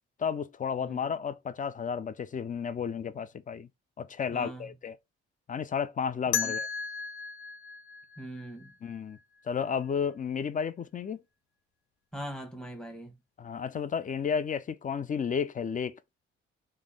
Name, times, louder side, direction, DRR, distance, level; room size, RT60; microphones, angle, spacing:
voice 1, 0.2-3.7 4.0-5.0 5.5-6.7 8.8-9.2 9.5-11.2 13.4-15.9, left 6 dB, 30° left, 0.4 m, -32 dB
voice 2, 4.3-4.7 6.4-6.5 8.2-8.7 12.1-13.2, right 1 dB, ahead, 1.1 m, -41 dB
sound 1, 6.3-9.2, left 7 dB, 75° left, 0.6 m, -35 dB
3.4 x 2.1 x 3.5 m
hypercardioid pair, 45°, 29 cm